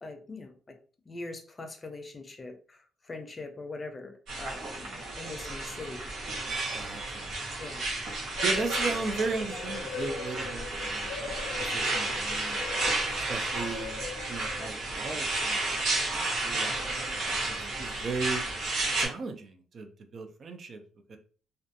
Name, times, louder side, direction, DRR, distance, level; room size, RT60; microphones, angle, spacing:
voice 1, 0.0-0.8 1.1-6.1 7.6-7.9 18.0-18.1, left 3 dB, 30° left, 6 dB, 0.5 m, -42 dB
sound 1, 4.3-19.1, right 2 dB, 80° right, 0.9 m, -32 dB
voice 2, 6.7-7.3 8.4-11.1 11.6-12.6 13.2-18.4 19.0-20.8 21.1-21.2, right 4 dB, 50° right, 6 dB, 0.4 m, -36 dB
sound 2, 8.4-14.9, left 6 dB, 90° left, 0.5 m, -41 dB
2.5 x 2.2 x 2.6 m, 0.41 s
cardioid pair, 90°, 0 cm